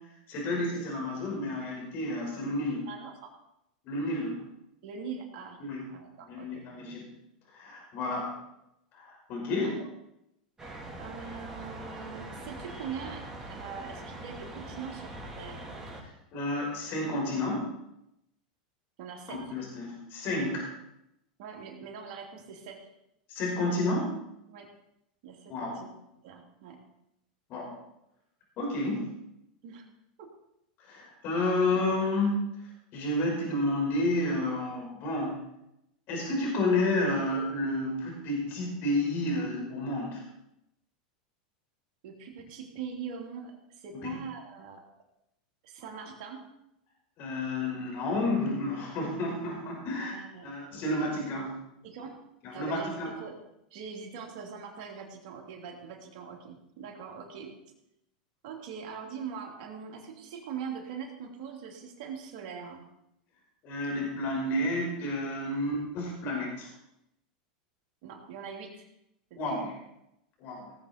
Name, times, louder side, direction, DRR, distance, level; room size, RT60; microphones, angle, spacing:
voice 1, 0.3-2.9 3.8-4.4 5.6-5.9 6.3-7.1 7.5-8.3 8.9-9.8 16.3-17.7 19.3-20.7 23.3-24.2 25.5-25.7 27.5-27.7 28.6-29.1 30.9-32.4 32.9-35.4 36.1-40.2 44.0-44.2 47.2-50.1 50.4-51.5 52.4-53.1 63.6-66.7 69.4-69.7 70.4-70.7, left 2 dB, 50° left, -1 dB, 5.4 m, -30 dB
voice 2, 2.9-3.3 4.8-5.6 5.8-6.6 8.2-8.3 9.6-9.9 11.0-15.7 19.0-19.5 21.4-22.9 24.5-24.7 25.2-25.9 26.2-26.8 29.6-29.8 30.2-30.3 42.0-44.8 45.6-46.5 50.0-50.5 51.8-52.1 52.5-53.4 53.7-57.5 58.4-62.9 68.0-68.7 69.3-69.7, right 6 dB, 60° right, 0 dB, 3.2 m, -42 dB
sound 1, 10.6-16.0, right 1 dB, 15° right, 3.7 m, -42 dB
18.0 x 8.1 x 4.5 m, 0.83 s
hypercardioid pair, 110°, 5 cm